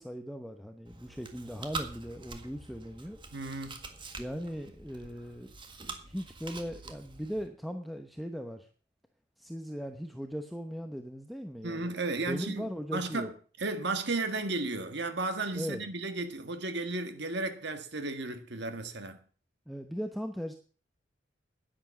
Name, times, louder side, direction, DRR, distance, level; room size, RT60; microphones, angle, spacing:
voice 1, 0.0-3.2 4.2-5.5 6.1-8.7 9.4-11.9 12.3-13.3 15.5-15.8 19.7-20.5, equal, ahead, 0.9 m, -38 dB
Chewing mastication, 0.8-7.5, right 3 dB, 25° right, 1.7 m, -45 dB
voice 2, 3.3-3.8 11.6-13.3 13.6-19.2, right 3 dB, 65° right, 1.7 m, -34 dB
11.0 x 10.0 x 7.1 m
head